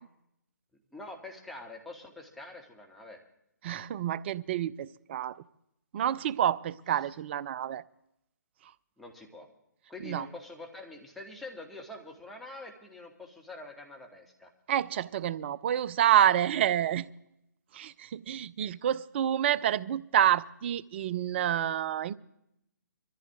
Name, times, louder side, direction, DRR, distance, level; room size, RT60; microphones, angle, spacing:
voice 1, 0.9-3.2 9.0-9.5 9.9-14.5, left 2 dB, ahead, 2.2 m, -45 dB
voice 2, 3.6-5.4 5.9-7.8 10.0-10.3 14.7-17.1 17.7-22.1, right 11 dB, 35° right, 0.6 m, -28 dB
23.0 x 14.5 x 3.7 m
figure-of-eight pair, 135°, 10 cm